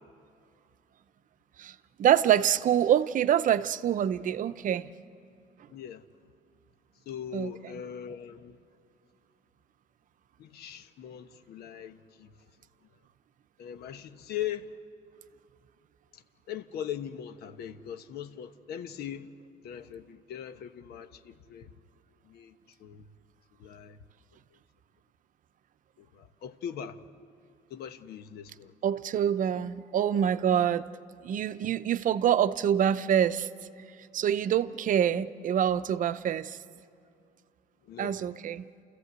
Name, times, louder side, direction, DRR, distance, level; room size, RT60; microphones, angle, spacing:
voice 1, 2.0-4.9 7.3-7.5 28.8-30.9 31.2-33.5 34.1-36.6 38.0-38.6, right 9 dB, 50° right, 0.7 m, -26 dB
voice 2, 5.7-6.0 7.1-8.6 10.4-12.3 13.6-14.8 16.1-16.2 16.5-19.3 19.6-21.7 22.2-23.1 23.6-24.0 26.0-27.0 27.7-28.7 37.8-38.2, left 9 dB, 70° left, 1.1 m, -40 dB
29.0 x 14.5 x 8.1 m
cardioid pair, 110°, 17 cm